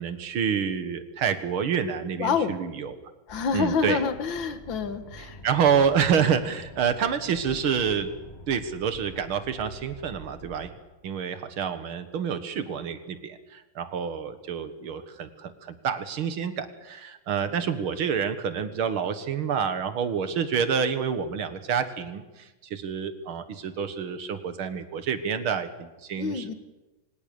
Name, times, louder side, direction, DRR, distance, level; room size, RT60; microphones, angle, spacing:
voice 1, 0.0-3.0 3.5-4.0 5.4-8.1 8.5-10.7 11.0-22.2 22.7-26.5, right 7 dB, 90° right, 10 dB, 2.3 m, -28 dB
voice 2, 2.2-2.6 3.3-5.4 26.2-26.5, left 5 dB, 65° left, 10 dB, 2.1 m, -27 dB
sound 1, 3.3-10.8, right 1 dB, 30° left, 3.2 m, -46 dB
24.5 x 18.0 x 6.9 m, 1.1 s
omnidirectional pair, 2.2 m